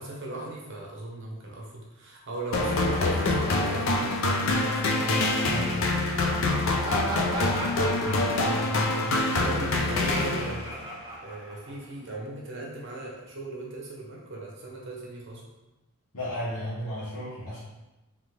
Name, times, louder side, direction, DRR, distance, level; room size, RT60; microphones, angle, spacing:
voice 1, 0.0-4.8 8.4-8.6 8.9-10.8 11.2-15.4, right 2 dB, 55° right, -2 dB, 1.0 m, -38 dB
sound 1, 2.5-10.8, left 2 dB, 60° left, 0.5 m, -25 dB
voice 2, 5.4-6.0 8.0-8.3 16.1-17.6, equal, 75° left, -12 dB, 1.3 m, -34 dB
Laughter, 6.6-12.1, right 1 dB, 20° right, 0.6 m, -37 dB
3.7 x 3.4 x 3.3 m, 1.0 s
head